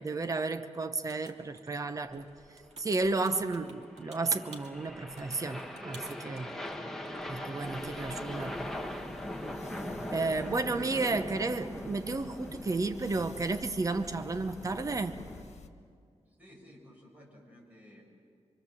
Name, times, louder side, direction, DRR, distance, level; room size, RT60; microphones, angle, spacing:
voice 1, 0.0-2.3 2.8-6.5 7.3-8.8 10.1-15.2, right 3 dB, 30° right, 7 dB, 0.9 m, -32 dB
sound 1, 1.1-1.8 2.1-6.8 7.0-7.3, right 4 dB, 75° right, 2.2 m, -54 dB
sound 2, 2.1-15.4, left 1 dB, 5° left, 1.6 m, -41 dB
sound 3, 7.6-15.7, left 4 dB, 75° left, 1.5 m, -51 dB
voice 2, 10.6-11.6 16.2-18.0, equal, 15° right, -2 dB, 6.6 m, -54 dB
25.0 x 25.0 x 7.4 m, 2.2 s
wide cardioid pair, 140°, 12 cm